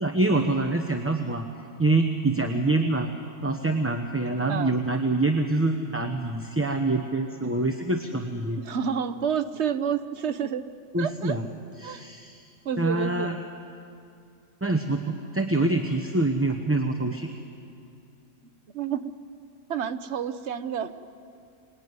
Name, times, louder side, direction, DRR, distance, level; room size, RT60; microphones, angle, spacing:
voice 1, 0.0-1.5 1.8-3.1 3.4-8.6 10.9-11.4 11.8-12.5 12.8-13.4 14.6-17.3, right 2 dB, 10° right, 3 dB, 0.9 m, -25 dB
voice 2, 8.6-10.6 11.0-11.4 11.8-12.1 12.6-13.3 18.7-19.1 19.7-20.9, right 7 dB, 60° right, 11 dB, 1.1 m, -29 dB
25.0 x 20.0 x 9.6 m, 2.5 s
omnidirectional pair, 1.3 m